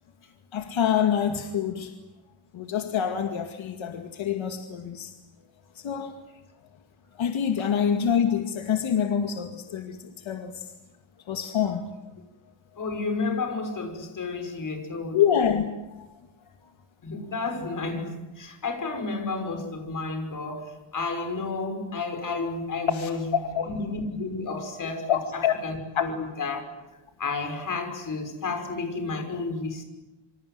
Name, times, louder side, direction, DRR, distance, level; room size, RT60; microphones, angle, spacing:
voice 1, 0.5-1.9 2.5-5.1 5.8-6.2 7.2-10.7 11.3-11.9 15.1-15.6 16.0-16.1 22.9-23.7 25.1-25.6 26.0-26.1, left 8 dB, 80° left, 2.3 m, -26 dB
voice 2, 12.8-15.2 17.0-23.3 23.7-26.6 27.2-29.8, left 3 dB, 40° left, 6.0 m, -31 dB
27.0 x 25.5 x 8.0 m
wide cardioid pair, 165°, 47 cm